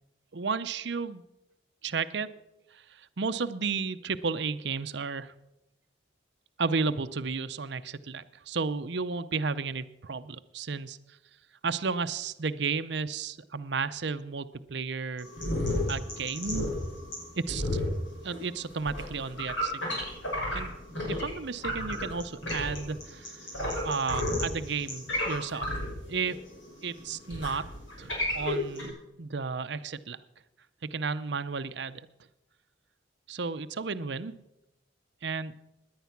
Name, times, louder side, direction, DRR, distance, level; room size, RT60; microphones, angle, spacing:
voice 1, 0.3-1.2 1.8-2.3 2.7-5.3 6.6-11.0 11.6-15.3 15.9-16.7 17.5-17.6 18.2-20.0 20.5-20.7 21.1-23.4 23.8-25.7 26.1-26.4 26.8-27.7 28.0-30.2 30.8-32.0 33.3-34.3 35.2-35.5, right 5 dB, 65° right, 12 dB, 0.7 m, -33 dB
sound 1, 15.2-21.3 21.6-28.9, left 1 dB, 80° left, 6.0 m, -32 dB
17.5 x 10.5 x 5.9 m, 0.91 s
head